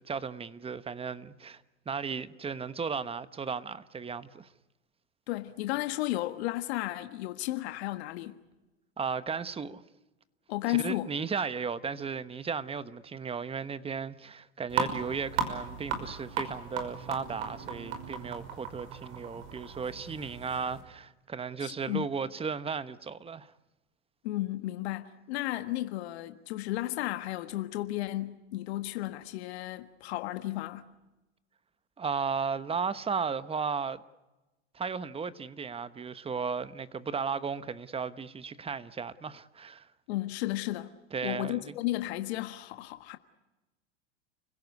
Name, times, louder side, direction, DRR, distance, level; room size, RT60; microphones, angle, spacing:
voice 1, 0.0-1.6 1.9-4.5 9.0-9.8 10.7-23.5 32.0-34.0 34.7-39.9 41.1-41.7, right 5 dB, 15° right, 1.1 m, -35 dB
voice 2, 5.3-8.4 10.5-11.1 21.6-22.1 24.2-30.9 40.1-40.9 41.2-43.2, left 16 dB, 65° left, 1.6 m, -33 dB
sound 1, 14.7-20.8, right 6 dB, 70° right, 5.8 m, -36 dB
30.0 x 17.0 x 9.5 m
hypercardioid pair, 105°, 34 cm